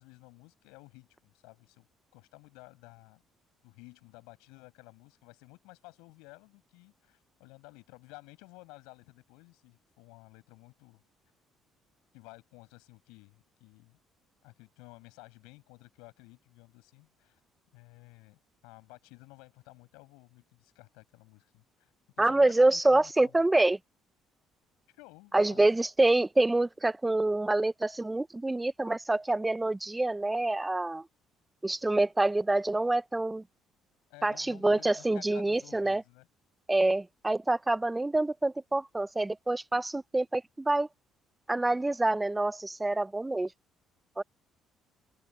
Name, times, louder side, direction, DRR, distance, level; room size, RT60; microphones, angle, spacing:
voice 1, 0.0-1.9 2.1-3.2 3.6-11.0 12.1-14.0 14.4-17.4 17.7-23.4 24.9-25.7 34.1-36.3, left 26 dB, 85° left, 6.8 m, -54 dB
voice 2, 22.2-23.8 25.3-31.0 31.6-33.4 34.2-36.0 36.7-40.9 41.5-43.5 44.2-44.3, right 2 dB, 15° right, 1.1 m, -26 dB
open air
supercardioid pair, 65°, 0 cm